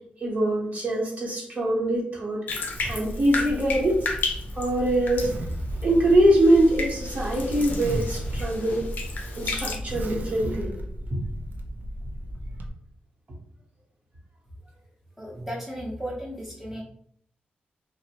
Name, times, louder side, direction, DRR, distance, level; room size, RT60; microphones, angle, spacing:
voice 1, 0.2-2.4 2.9-4.1 4.6-5.3 5.8-8.8 9.4-10.7 11.1-11.2, right 1 dB, 45° right, -3 dB, 0.9 m, -23 dB
Bathtub (filling or washing), 2.5-9.8, left 3 dB, 65° left, 0.5 m, -34 dB
Zipper (clothing), 2.8-12.7, equal, 65° right, 0.4 m, -34 dB
voice 2, 15.2-16.8, equal, 5° right, -5 dB, 0.7 m, -35 dB
2.7 x 2.0 x 2.8 m, 0.65 s
cardioid pair, 100°, 3 cm